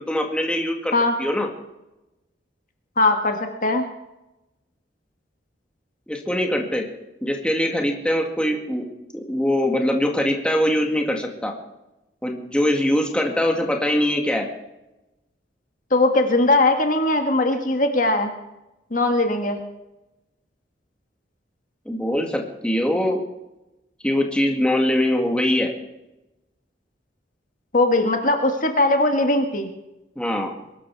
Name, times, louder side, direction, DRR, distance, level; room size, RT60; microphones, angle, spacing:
voice 1, 0.1-0.9 1.2-1.5 6.1-6.9 7.2-8.9 9.1-11.5 12.2-14.5 21.9-23.2 24.0-25.7 30.2-30.5, left 1 dB, 5° left, 2 dB, 2.1 m, -22 dB
voice 2, 3.0-3.8 15.9-18.3 18.9-19.6 27.7-29.7, left 2 dB, 45° left, 5 dB, 1.7 m, -20 dB
22.0 x 12.5 x 4.8 m, 0.95 s
head